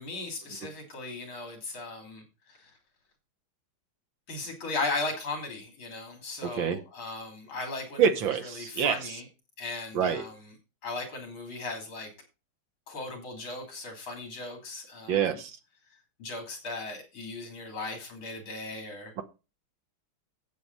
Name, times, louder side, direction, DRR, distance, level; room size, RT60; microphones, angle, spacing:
voice 1, 0.0-2.2 4.3-8.0 8.6-9.2 9.6-10.3 10.8-12.1 12.9-15.2 16.2-19.1, left 3 dB, 70° left, 4.0 m, -37 dB
voice 2, 6.4-6.8 8.0-9.2 9.9-10.3 15.1-15.6 19.2-19.3, right 7 dB, 65° right, 1.7 m, -27 dB
10.5 x 8.3 x 4.1 m
omnidirectional pair, 2.3 m